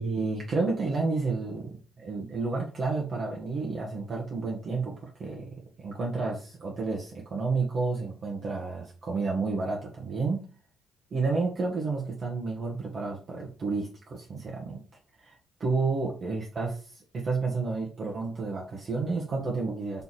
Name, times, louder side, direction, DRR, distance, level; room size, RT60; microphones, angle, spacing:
voice 1, 0.0-5.5 5.8-10.4 11.1-14.8 15.2-20.0, right 4 dB, 50° right, -2 dB, 1.1 m, -31 dB
3.4 x 2.9 x 4.1 m, 0.36 s
cardioid pair, 90°, 0 cm